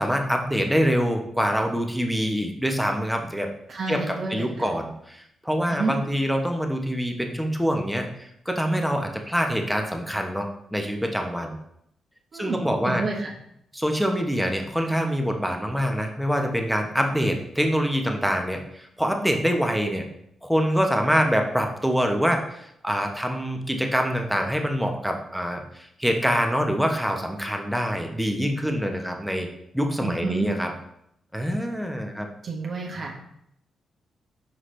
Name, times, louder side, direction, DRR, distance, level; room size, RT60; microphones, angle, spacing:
voice 1, 0.0-3.5 3.9-11.6 12.3-13.0 13.7-20.0 20.4-29.5 29.7-30.7 31.3-32.3, equal, ahead, 3 dB, 1.0 m, -25 dB
voice 2, 3.7-4.7 5.7-5.9 12.3-13.3 30.0-30.5 32.4-33.1, right 3 dB, 55° right, 0 dB, 1.2 m, -30 dB
6.0 x 4.8 x 3.2 m, 0.74 s
cardioid pair, 70°, 0 cm